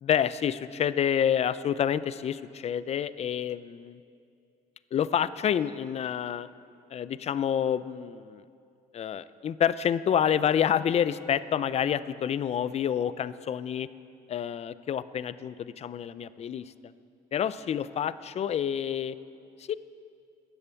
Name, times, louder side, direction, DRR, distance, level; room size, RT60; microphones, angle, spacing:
voice 1, 0.0-4.0 4.9-6.5 6.9-8.4 8.9-13.9 14.3-16.7 17.3-19.2 19.7-19.8, left 9 dB, 40° left, 16 dB, 0.5 m, -28 dB
15.5 x 10.5 x 7.0 m, 2.5 s
cardioid pair, 110°, 17 cm